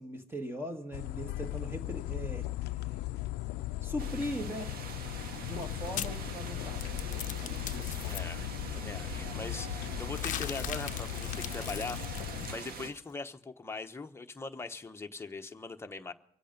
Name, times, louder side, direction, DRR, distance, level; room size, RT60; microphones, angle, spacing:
voice 1, 0.0-2.5 3.8-4.8 5.5-8.0, equal, 15° right, 1.6 m, -40 dB
sound 1, 0.9-12.5, left 16 dB, 80° left, 0.5 m, -38 dB
sound 2, 4.0-12.9, right 5 dB, 65° right, 1.6 m, -43 dB
sound 3, 5.4-8.2 10.0-13.0, left 11 dB, 50° left, 0.7 m, -41 dB
voice 2, 8.0-12.0 12.5-16.1, left 3 dB, 15° left, 1.0 m, -41 dB
24.5 x 8.4 x 5.3 m
cardioid pair, 110°, 17 cm